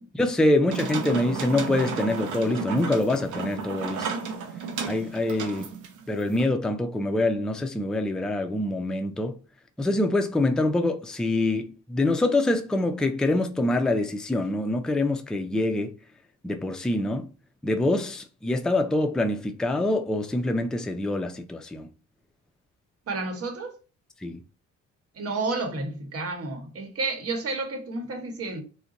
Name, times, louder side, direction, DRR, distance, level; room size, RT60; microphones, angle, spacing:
voice 1, 0.1-4.1 4.9-5.7 6.1-9.4 9.8-15.9 16.4-17.3 17.6-21.9 24.2-24.4, left 2 dB, ahead, 0.3 m, -25 dB
sound 1, 0.7-6.4, right 5 dB, 80° right, 0.7 m, -33 dB
voice 2, 23.1-23.7 25.1-28.6, right 3 dB, 50° right, 1.1 m, -31 dB
2.4 x 2.2 x 4.0 m
cardioid pair, 90°, 30 cm